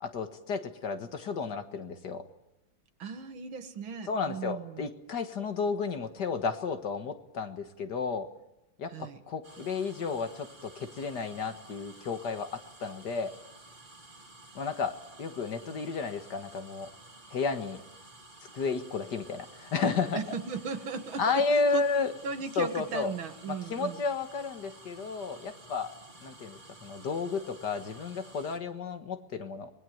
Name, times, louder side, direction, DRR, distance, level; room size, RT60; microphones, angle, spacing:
voice 1, 0.0-2.3 4.1-8.3 8.8-13.3 14.6-16.9 17.3-17.8 18.5-20.2 21.2-22.1 22.6-23.1 23.5-25.9 26.2-29.7, left 4 dB, 60° left, 8 dB, 2.0 m, -32 dB
voice 2, 3.0-4.9 8.9-9.2 15.7-15.9 20.1-21.9 22.2-24.0, right 5 dB, 85° right, 8 dB, 2.4 m, -37 dB
sound 1, 9.4-28.6, right 2 dB, 25° right, 2.6 m, -52 dB
26.0 x 20.5 x 9.4 m, 0.89 s
omnidirectional pair, 2.2 m